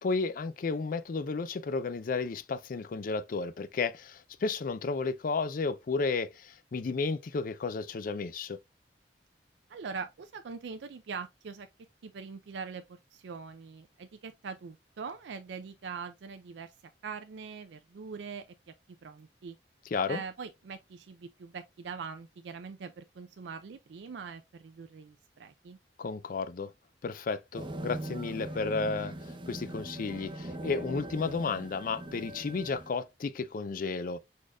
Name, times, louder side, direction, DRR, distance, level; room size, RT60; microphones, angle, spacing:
voice 1, 0.0-8.6 19.9-20.2 26.0-26.7 27.0-34.2, left 4 dB, 50° left, 0.4 m, -33 dB
voice 2, 9.7-11.7 12.0-16.7 17.0-18.5 19.0-19.6 20.1-25.8, right 5 dB, 85° right, 0.4 m, -42 dB
sound 1, 27.5-32.9, right 1 dB, 30° right, 0.6 m, -40 dB
4.9 x 4.2 x 2.2 m
head